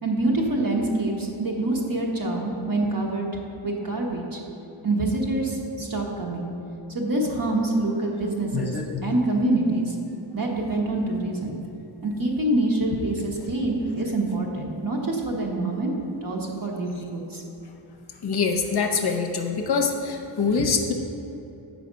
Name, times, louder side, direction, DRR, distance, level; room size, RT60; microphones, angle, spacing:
voice 1, 0.0-3.3 3.6-4.4 4.8-6.5 6.9-8.7 9.0-9.9 10.3-11.6 12.0-17.4, right 2 dB, 45° right, -1 dB, 1.2 m, -26 dB
voice 2, 8.5-9.1 18.2-20.9, left 5 dB, 50° left, 3 dB, 0.7 m, -25 dB
7.6 x 5.1 x 5.1 m, 3.0 s
wide cardioid pair, 120°, 49 cm